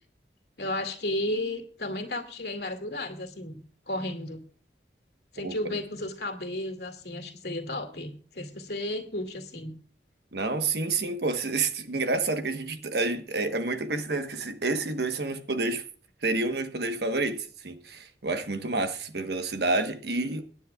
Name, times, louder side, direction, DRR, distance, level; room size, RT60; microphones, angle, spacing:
voice 1, 0.6-3.6 3.9-4.4 5.3-9.7, left 1 dB, 65° left, 2.3 m, -33 dB
voice 2, 10.3-15.8 16.2-20.4, right 3 dB, 65° right, 1.2 m, -29 dB
24.0 x 9.8 x 2.4 m
head